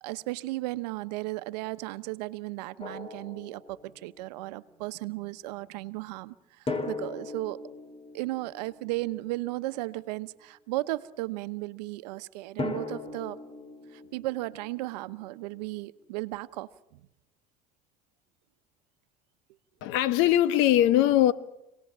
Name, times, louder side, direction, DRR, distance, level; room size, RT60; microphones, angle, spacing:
voice 1, 0.0-7.6 8.1-13.4 13.9-17.0, right 19 dB, 90° right, 0.9 m, -35 dB
Drum, 2.8-4.2 6.7-9.6 12.6-15.4, left 3 dB, 30° left, 3.8 m, -39 dB
voice 2, 19.8-21.3, left 12 dB, 75° left, 1.4 m, -21 dB
27.5 x 19.0 x 7.4 m
supercardioid pair, 90°, 20 cm